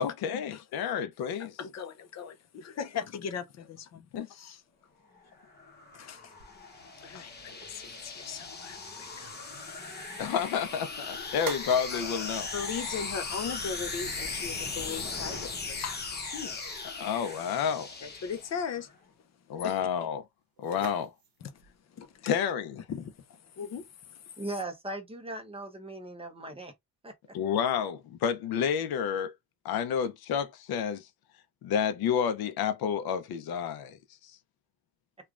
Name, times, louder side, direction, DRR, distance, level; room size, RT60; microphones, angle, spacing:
voice 1, 0.0-1.6 4.1-4.3 10.2-12.5 17.0-17.9 19.5-20.2 20.6-21.1 22.2-22.8 27.3-29.3 29.6-31.1 31.6-34.0, left 7 dB, 90° left, 0.6 m, -30 dB
voice 2, 1.4-4.1 4.3-4.6 5.9-6.3 7.0-9.3 11.9-12.2 12.5-16.1 16.3-16.6 18.0-18.9 19.6-19.8 21.4-21.5 22.0-22.4 22.9-24.2, left 6 dB, 50° left, 0.5 m, -38 dB
sound 1, 5.3-18.8, left 3 dB, 30° left, 0.9 m, -38 dB
sound 2, 6.4-24.8, right 7 dB, 75° right, 0.8 m, -51 dB
voice 3, 24.4-26.7 27.0-27.1, right 2 dB, 15° right, 0.7 m, -38 dB
3.1 x 2.3 x 2.4 m
cardioid pair, 125°, 36 cm